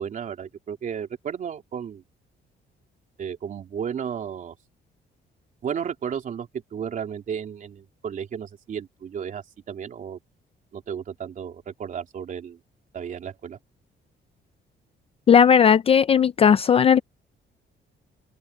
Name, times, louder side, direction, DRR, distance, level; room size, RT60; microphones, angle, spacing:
voice 1, 0.0-2.0 3.2-4.5 5.6-10.2 10.7-12.6 12.9-13.6, right 8 dB, 45° right, 3.2 m, -33 dB
voice 2, 15.3-17.0, left 7 dB, 30° left, 0.4 m, -16 dB
open air
cardioid pair, 175°, 19 cm